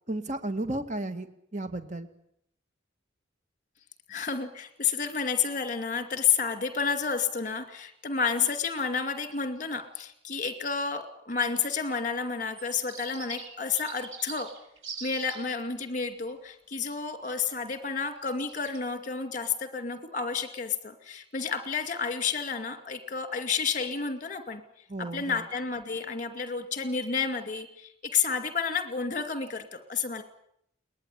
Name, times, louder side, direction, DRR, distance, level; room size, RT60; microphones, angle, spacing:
voice 1, 0.1-1.3 1.5-2.1 24.9-25.4, right 1 dB, 40° right, 9 dB, 2.2 m, -33 dB
voice 2, 4.1-14.5 15.0-24.6 25.0-30.2, left 6 dB, 40° left, 9 dB, 2.3 m, -30 dB
sound 1, 12.5-15.4 18.3-18.8, right 5 dB, 85° right, 7.0 m, -43 dB
21.5 x 19.5 x 9.9 m, 0.73 s
head